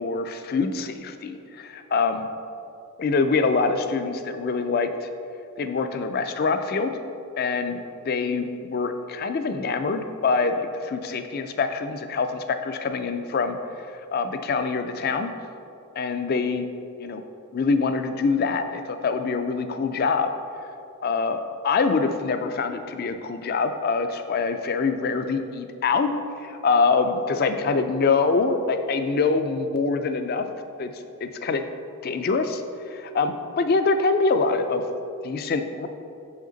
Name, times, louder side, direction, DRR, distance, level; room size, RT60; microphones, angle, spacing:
voice 1, 0.0-2.3 3.0-5.1 5.6-6.9 7.4-13.6 14.1-15.3 16.0-16.7 17.0-17.2 17.5-20.3 21.0-26.1 26.6-30.5 30.8-30.9 31.2-31.7 32.0-32.6 32.9-34.8 35.2-35.9, left 4 dB, 40° left, 8 dB, 0.3 m, -24 dB
6.3 x 5.1 x 3.9 m, 2.6 s
head